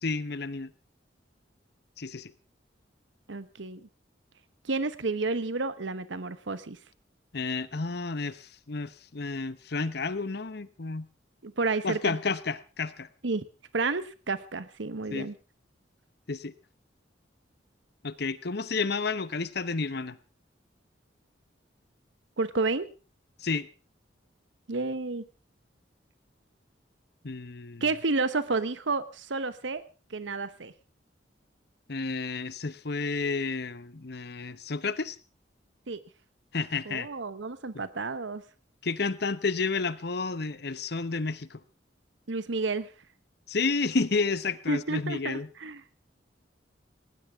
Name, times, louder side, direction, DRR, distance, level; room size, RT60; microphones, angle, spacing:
voice 1, 0.0-0.7 2.0-2.3 7.3-11.1 11.8-13.1 15.1-15.3 16.3-16.5 18.0-20.2 23.4-23.7 27.2-27.8 31.9-35.2 36.5-37.1 37.7-37.8 38.8-41.6 43.5-45.5, left 4 dB, 60° left, 15 dB, 0.9 m, -31 dB
voice 2, 3.3-3.9 4.6-6.8 11.4-12.2 13.2-13.5 13.7-15.3 22.4-22.9 24.7-25.3 27.8-29.8 30.1-30.7 35.9-36.0 36.8-38.4 42.3-42.9 44.7-45.8, right 3 dB, 90° right, 13 dB, 1.0 m, -30 dB
19.0 x 18.5 x 3.6 m, 0.33 s
head